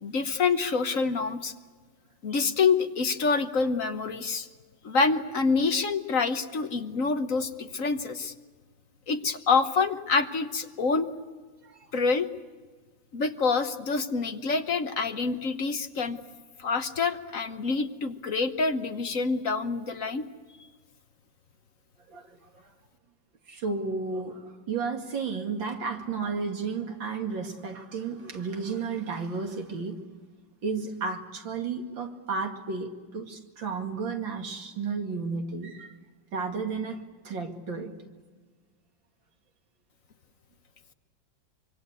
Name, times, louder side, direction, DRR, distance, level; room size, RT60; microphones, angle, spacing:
voice 1, 0.0-1.5 2.2-4.5 4.8-8.3 9.1-11.1 11.9-12.3 13.1-16.2 16.6-20.3, left 4 dB, 50° left, 8 dB, 1.4 m, -26 dB
voice 2, 22.1-22.6 23.5-30.0 30.6-36.0 36.3-37.9, right 4 dB, 90° right, 4 dB, 3.0 m, -33 dB
26.0 x 25.0 x 8.3 m, 1.4 s
omnidirectional pair, 2.0 m